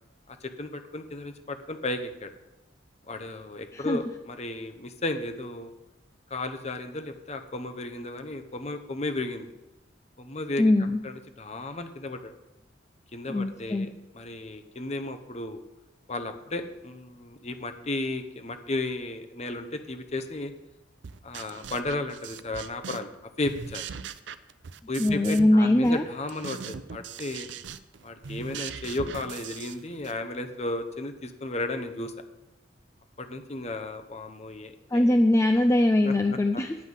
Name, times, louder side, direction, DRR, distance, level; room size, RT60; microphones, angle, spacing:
voice 1, 0.3-2.3 3.1-5.7 6.3-9.5 10.2-10.7 11.0-12.3 13.1-13.9 14.1-15.6 16.1-20.5 21.2-23.1 23.4-23.8 24.9-27.5 28.0-32.1 33.2-35.2 36.0-36.4, left 2 dB, 35° left, 8 dB, 0.9 m, -34 dB
voice 2, 10.6-11.0 13.3-13.9 25.0-26.0 34.9-36.8, left 1 dB, 15° left, 5 dB, 0.4 m, -22 dB
sound 1, 21.0-23.2 23.4-25.6 25.8-30.2, right 6 dB, 70° right, 0.5 m, -40 dB
9.7 x 5.5 x 8.1 m, 0.95 s
head